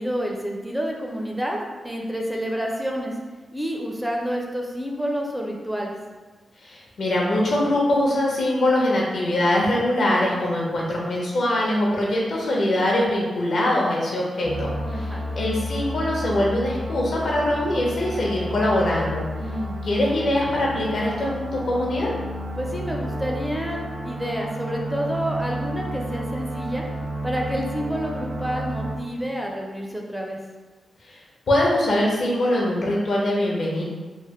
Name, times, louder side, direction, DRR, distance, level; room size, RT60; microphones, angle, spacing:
voice 1, 0.0-1.6 1.8-3.2 3.5-6.0 14.9-15.2 19.4-19.8 22.6-26.8 27.2-30.4, equal, 5° right, -1 dB, 0.4 m, -29 dB
voice 2, 6.6-14.7 14.9-15.1 15.4-19.2 19.8-22.1 31.0-31.2 31.5-33.8, left 1 dB, 75° left, -4 dB, 0.8 m, -22 dB
sound 1, 14.4-29.0, equal, 60° right, 0.7 m, -31 dB
3.1 x 2.1 x 3.0 m, 1.3 s
cardioid pair, 90°, 0 cm